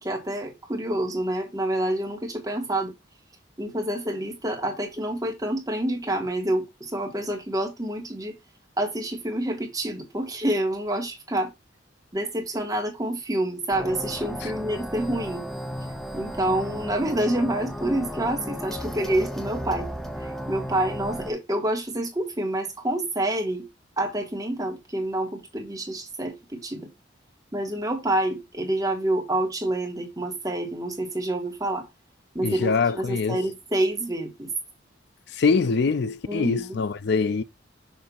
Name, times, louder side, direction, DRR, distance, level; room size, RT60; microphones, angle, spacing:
voice 1, 0.0-2.9 3.6-8.3 8.8-11.5 12.1-15.5 16.1-19.9 20.2-23.7 24.0-26.9 27.5-31.9 32.3-34.5 36.3-36.8, right 1 dB, 20° right, 1.6 m, -27 dB
sound 1, 13.7-21.3, equal, ahead, 0.6 m, -34 dB
voice 2, 32.4-33.4 35.3-37.4, left 4 dB, 60° left, 0.4 m, -24 dB
6.6 x 2.8 x 5.4 m
head